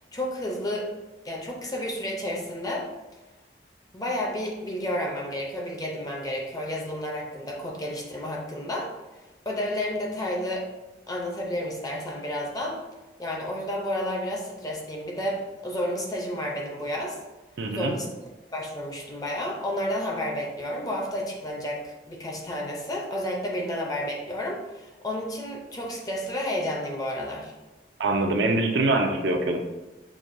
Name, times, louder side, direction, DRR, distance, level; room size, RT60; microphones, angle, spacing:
voice 1, 0.1-0.9 1.2-2.9 3.9-8.9 9.5-10.7 11.1-12.8 13.2-17.2 17.7-18.1 18.5-27.5, left 1 dB, 20° left, -1 dB, 0.6 m, -31 dB
voice 2, 17.6-17.9 28.0-29.6, right 2 dB, 75° right, 3 dB, 0.5 m, -24 dB
6.1 x 2.2 x 2.6 m, 1.1 s
head